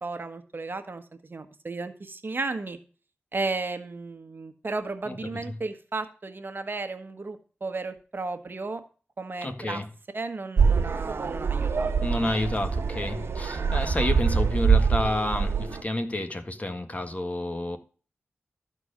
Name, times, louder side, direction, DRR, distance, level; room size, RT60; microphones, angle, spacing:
voice 1, 0.0-2.8 3.3-8.8 9.2-9.8 10.1-12.1 13.5-13.7, right 3 dB, 50° right, 1.4 m, -34 dB
voice 2, 9.4-9.9 12.0-17.8, left 1 dB, 35° left, 1.6 m, -30 dB
sound 1, 10.6-15.8, right 5 dB, 75° right, 1.5 m, -24 dB
13.5 x 4.5 x 6.6 m
cardioid pair, 45°, 4 cm